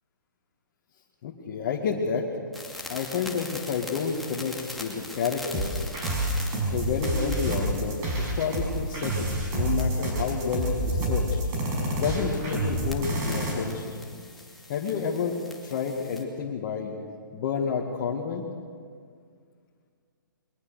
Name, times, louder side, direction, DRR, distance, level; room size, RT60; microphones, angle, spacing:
voice 1, 1.2-2.3 2.9-5.9 6.6-11.4 12.0-13.8 14.7-15.4 15.6-16.9 17.3-18.5, left 6 dB, 40° left, -1 dB, 2.2 m, -30 dB
sound 1, 2.5-16.2, left 2 dB, ahead, 2.4 m, -44 dB
sound 2, 5.5-13.5, right 1 dB, 25° right, 5.8 m, -28 dB
22.5 x 20.0 x 6.6 m, 2.1 s
hypercardioid pair, 140°, 11 cm